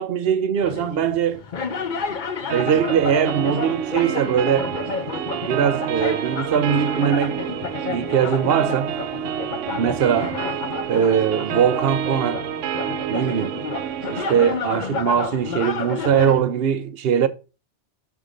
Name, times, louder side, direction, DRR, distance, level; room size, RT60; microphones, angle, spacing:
voice 1, 0.0-1.4 2.5-4.7 5.4-7.4 7.9-8.9 9.8-10.4 10.9-12.4 13.1-13.6 14.1-17.3, right 8 dB, 60° right, 0.8 m, -21 dB
sound 1, 0.6-16.4, left 5 dB, 50° left, 0.7 m, -31 dB
sound 2, 2.5-14.5, right 10 dB, 85° right, 0.9 m, -29 dB
6.2 x 3.6 x 5.1 m
omnidirectional pair, 1.2 m